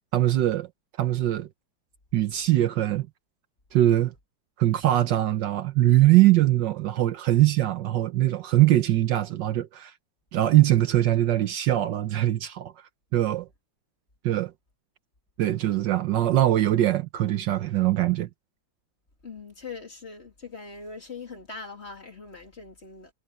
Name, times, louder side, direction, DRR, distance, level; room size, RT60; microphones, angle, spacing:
voice 1, 0.1-0.7 1.0-1.5 2.1-3.1 3.7-4.1 4.6-9.9 10.3-12.7 13.1-13.5 14.2-14.5 15.4-18.3, right 14 dB, 70° right, 1.4 m, -22 dB
voice 2, 19.2-23.1, left 4 dB, 35° left, 2.9 m, -41 dB
omnidirectional pair, 2.1 m